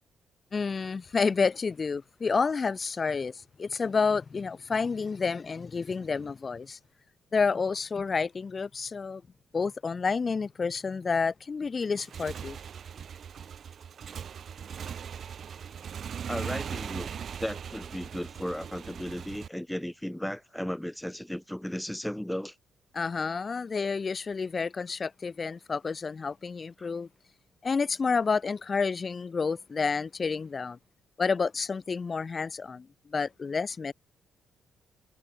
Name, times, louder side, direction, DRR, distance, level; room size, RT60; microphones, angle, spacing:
voice 1, 0.5-6.8 7.3-9.2 9.5-12.6 22.9-27.1 27.6-30.8 31.2-33.9, left 5 dB, 35° left, 1.4 m, -29 dB
Motorcycle / Engine, 11.9-19.5, right 7 dB, 55° right, 3.5 m, -39 dB
voice 2, 16.3-17.1 17.4-22.6 26.8-26.9, equal, 5° left, 0.6 m, -35 dB
cardioid pair, 90°, 0 cm